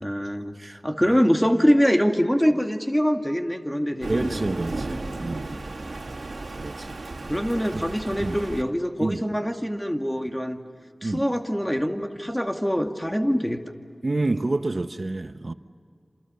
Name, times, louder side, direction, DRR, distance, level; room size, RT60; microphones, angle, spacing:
voice 1, 0.0-4.5 7.3-10.6 11.0-13.6, equal, 10° left, 2.3 m, -24 dB
Thunder, 4.0-8.6, right 2 dB, 85° right, 2.4 m, -34 dB
voice 2, 4.1-5.6 6.6-7.0 7.7-7.9 8.2-8.4 9.0-9.3 11.0-11.3 14.0-15.5, right 2 dB, 55° right, 1.1 m, -28 dB
28.0 x 27.5 x 7.0 m
wide cardioid pair, 45°, 0 cm